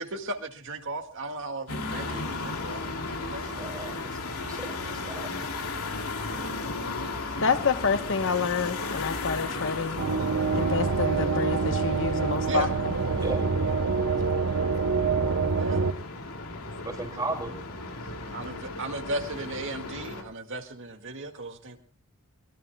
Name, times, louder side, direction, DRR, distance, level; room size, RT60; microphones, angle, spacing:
voice 1, 0.0-3.7 12.5-12.7 15.6-15.8 18.3-21.8, right 2 dB, 60° right, 5 dB, 2.0 m, -36 dB
sound 1, 1.7-20.2, left 3 dB, 75° left, 2.7 m, -35 dB
voice 2, 3.6-5.3 13.2-13.4 16.8-17.5, right 2 dB, 20° right, -2 dB, 2.5 m, -35 dB
voice 3, 7.4-10.0 10.5-12.9, left 5 dB, 60° left, 10 dB, 1.1 m, -28 dB
sound 2, 10.0-15.9, right 4 dB, 80° right, 0.9 m, -26 dB
23.5 x 21.5 x 2.3 m, 0.34 s
head